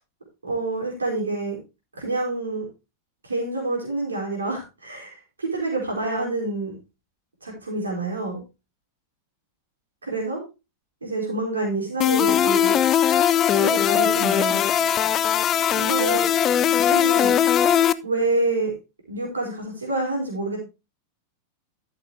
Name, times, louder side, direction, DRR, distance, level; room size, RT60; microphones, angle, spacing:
voice 1, 0.4-1.6 1.9-2.7 3.2-6.7 7.4-8.4 10.0-10.4 11.0-12.8 13.5-14.6 15.7-16.3 16.7-17.3 18.0-18.7 19.1-20.6, right 2 dB, 75° right, -1 dB, 4.2 m, -27 dB
sound 1, 12.0-17.9, left 9 dB, 30° left, 0.5 m, -20 dB
13.5 x 6.7 x 3.3 m, 0.27 s
figure-of-eight pair, 90°, 0 cm